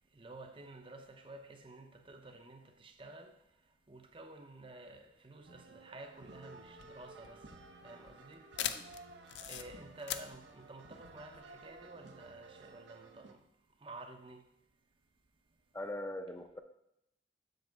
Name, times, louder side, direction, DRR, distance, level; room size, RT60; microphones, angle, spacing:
voice 1, 0.0-3.4 3.9-7.5 7.8-8.5 9.4-13.4 13.8-14.5, right 2 dB, 30° right, 0.6 m, -51 dB
sound 1, 5.5-13.3, right 3 dB, 90° right, 0.8 m, -55 dB
sound 2, 6.7-11.8, left 11 dB, 80° left, 0.4 m, -43 dB
voice 2, 15.7-16.6, left 1 dB, 15° left, 0.5 m, -41 dB
7.8 x 6.7 x 3.5 m
head